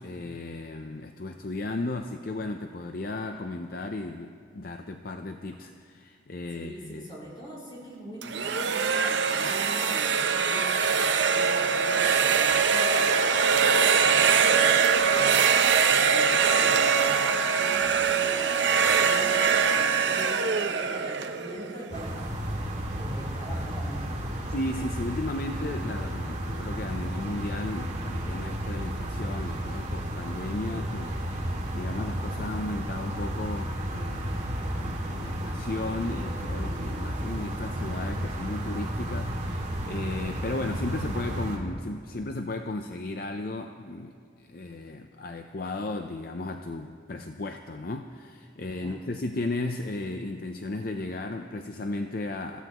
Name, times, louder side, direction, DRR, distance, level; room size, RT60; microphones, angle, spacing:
voice 1, 0.0-7.1 24.5-34.5 34.8-52.6, left 2 dB, 50° left, 5 dB, 0.6 m, -35 dB
voice 2, 6.5-15.6 15.9-22.6 22.9-24.4 48.8-49.0, equal, 25° left, -5 dB, 5.0 m, -42 dB
sound 1, 8.2-22.1, right 6 dB, 75° right, 0.7 m, -23 dB
sound 2, 21.9-41.6, equal, 40° right, 2.3 m, -32 dB
26.5 x 15.0 x 3.0 m, 2.2 s
head